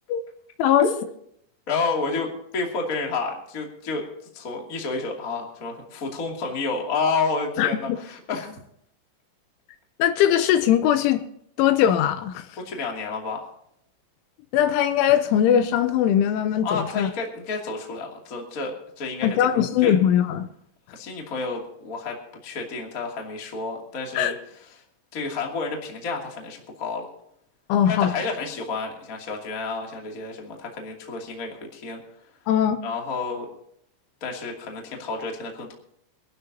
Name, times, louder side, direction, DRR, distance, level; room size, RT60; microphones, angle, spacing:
voice 1, 1.7-4.0 4.3-8.5 12.6-13.5 16.6-20.0 20.9-22.2 22.4-24.4 25.1-27.1 27.8-32.0 32.8-33.5 34.2-35.7, left 4 dB, 30° left, 0 dB, 1.6 m, -30 dB
voice 2, 7.6-8.0 10.0-11.2 11.6-12.5 14.5-17.1 19.2-20.5 24.2-24.3 27.7-28.1 32.5-32.8, left 10 dB, 80° left, 10 dB, 3.1 m, -20 dB
26.0 x 12.0 x 2.8 m, 0.72 s
omnidirectional pair, 5.8 m